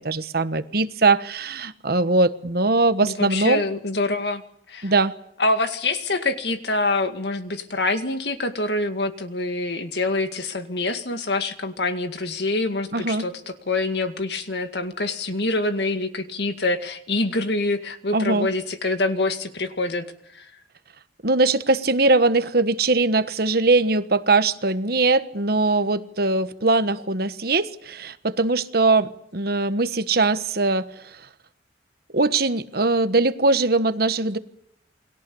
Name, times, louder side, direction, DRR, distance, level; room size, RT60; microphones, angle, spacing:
voice 1, 0.0-3.6 4.8-5.1 12.9-13.3 18.1-18.5 21.2-31.2 32.1-34.4, right 3 dB, 55° right, 11 dB, 1.3 m, -21 dB
voice 2, 3.0-4.4 4.7-4.9 5.4-20.1 20.3-20.5, left 2 dB, 65° left, 8 dB, 2.1 m, -25 dB
29.0 x 22.0 x 7.1 m, 0.74 s
head